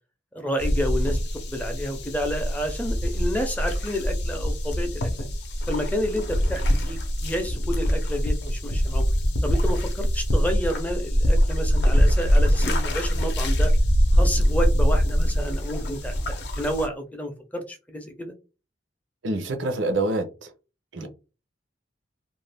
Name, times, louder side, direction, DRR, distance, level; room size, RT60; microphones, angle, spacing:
voice 1, 0.3-1.2 1.5-5.1 5.7-9.1 9.4-13.7 14.1-18.3 21.0-21.1, equal, 10° left, 0.5 m, -30 dB
sound 1, 0.6-16.9, equal, 60° left, 0.6 m, -23 dB
voice 2, 19.2-20.5 20.9-21.1, right 2 dB, 90° right, 0.7 m, -26 dB
2.5 x 2.2 x 3.3 m
head